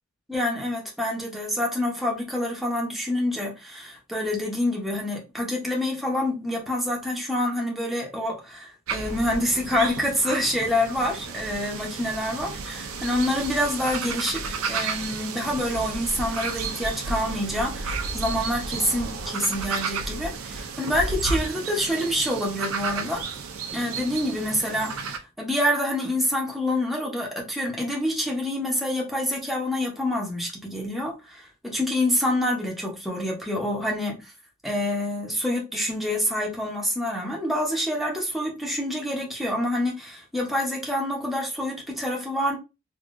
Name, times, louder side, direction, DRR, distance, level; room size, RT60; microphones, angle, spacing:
voice 1, 0.3-23.2 23.7-34.3 34.6-42.6, left 1 dB, ahead, 0.8 m, -27 dB
sound 1, 8.9-25.2, right 4 dB, 80° right, 0.6 m, -32 dB
3.5 x 2.8 x 2.5 m
head